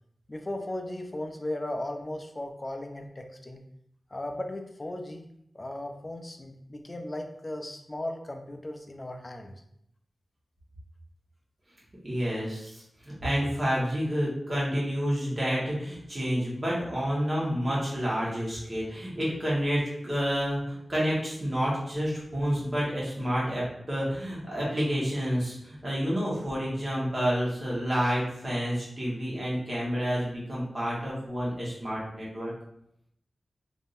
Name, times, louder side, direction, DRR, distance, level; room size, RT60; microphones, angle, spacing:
voice 1, 0.3-3.6 4.1-5.2 5.5-9.6, left 1 dB, 25° left, 4 dB, 0.4 m, -36 dB
voice 2, 12.0-12.8 13.2-32.5, equal, 30° right, -6 dB, 1.3 m, -29 dB
3.6 x 2.6 x 2.6 m, 0.74 s
wide cardioid pair, 105°, 0 cm